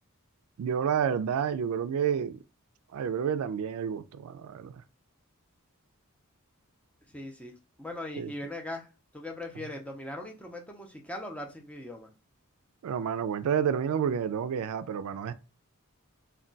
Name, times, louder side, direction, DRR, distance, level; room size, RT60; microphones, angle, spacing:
voice 1, 0.6-2.4 2.9-4.8 8.2-8.3 12.8-15.3, right 8 dB, 70° right, 0.3 m, -29 dB
voice 2, 7.1-7.5 7.8-8.9 9.1-12.1, left 1 dB, 5° left, 0.5 m, -39 dB
2.2 x 2.2 x 3.8 m
head